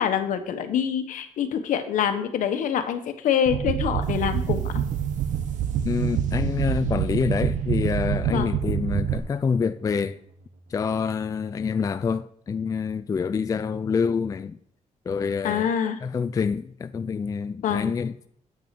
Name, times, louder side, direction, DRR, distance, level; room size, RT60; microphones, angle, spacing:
voice 1, 0.0-4.7 8.3-8.5 15.4-16.0 17.6-17.9, left 8 dB, 75° left, 1.1 m, -25 dB
sound 1, 3.5-9.2, right 9 dB, 90° right, 0.6 m, -26 dB
sound 2, 4.0-11.3, right 7 dB, 70° right, 1.2 m, -45 dB
voice 2, 5.8-10.2 10.7-14.6 15.1-15.7 16.0-18.1, left 5 dB, 25° left, 0.3 m, -26 dB
8.7 x 6.1 x 5.9 m
cardioid pair, 120°, 13 cm